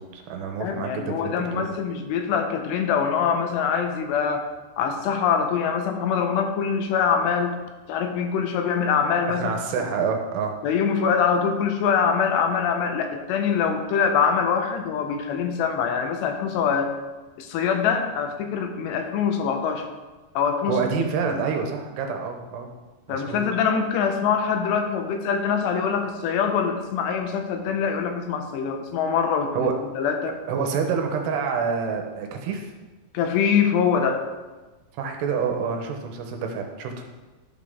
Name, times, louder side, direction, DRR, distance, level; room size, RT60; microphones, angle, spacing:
voice 1, 0.0-1.7 9.3-10.5 20.7-22.7 23.1-23.4 29.5-29.7 30.5-32.7 34.9-37.0, right 6 dB, 80° right, 3 dB, 2.9 m, -27 dB
voice 2, 0.6-4.5 4.8-7.6 7.9-9.9 10.6-16.9 17.4-19.9 20.4-21.4 23.1-29.7 30.0-30.4 33.1-34.2, left 6 dB, 85° left, 5 dB, 2.9 m, -24 dB
11.5 x 5.9 x 3.7 m, 1.2 s
omnidirectional pair, 4.9 m